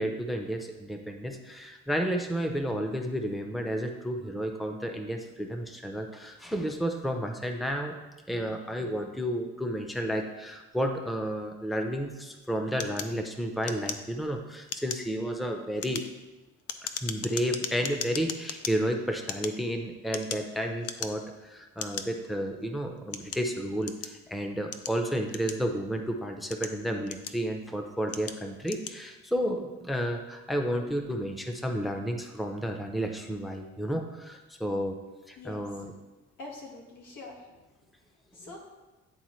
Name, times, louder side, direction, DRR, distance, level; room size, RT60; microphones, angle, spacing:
voice 1, 0.0-7.9 8.3-16.0 16.8-35.0 35.3-35.9, equal, ahead, 4 dB, 0.6 m, -32 dB
sound 1, 12.8-14.3 14.6-15.1 15.6-18.7 19.2-20.5 20.8-21.3 21.8-22.1 22.7-24.2 24.7-25.9 26.4-27.6 28.1-28.4 28.6-29.0, left 7 dB, 55° left, 0.5 m, -37 dB
voice 2, 36.4-37.5 38.3-38.6, left 2 dB, 90° left, -2 dB, 1.7 m, -44 dB
10.0 x 3.6 x 3.2 m, 1.1 s
cardioid pair, 90°, 30 cm